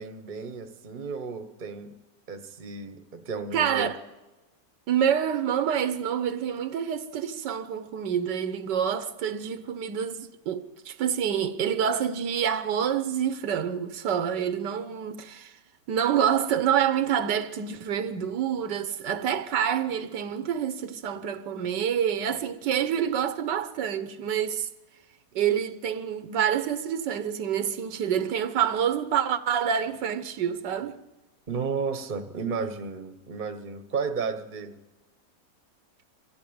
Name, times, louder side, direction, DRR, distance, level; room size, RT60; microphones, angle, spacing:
voice 1, 0.0-2.0 2.3-3.9 31.5-34.8, right 5 dB, 30° right, 1.1 m, -33 dB
voice 2, 3.5-4.0 4.9-15.5 15.9-24.7 25.3-31.0, right 8 dB, 80° right, 1.6 m, -27 dB
24.0 x 14.5 x 8.8 m
omnidirectional pair, 1.8 m